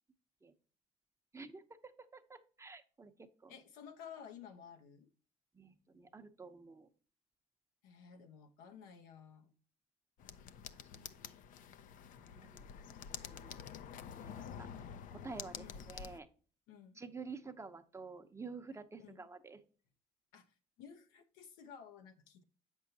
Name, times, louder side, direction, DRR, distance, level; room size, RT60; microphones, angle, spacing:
voice 1, 2.1-3.1 3.4-3.5 5.6-6.9 10.9-11.3 12.2-12.6 13.3-13.6 14.1-14.7 15.2-16.3 17.0-19.6, right 4 dB, 20° right, 0.7 m, -50 dB
voice 2, 3.5-5.1 7.8-9.5 15.5-15.9 16.7-17.0 19.0-19.3 20.3-20.5 20.8-22.4, left 7 dB, 90° left, 0.9 m, -54 dB
sound 1, 10.2-16.2, left 8 dB, 65° left, 0.5 m, -48 dB
7.7 x 6.3 x 2.7 m
cardioid pair, 90°, 15 cm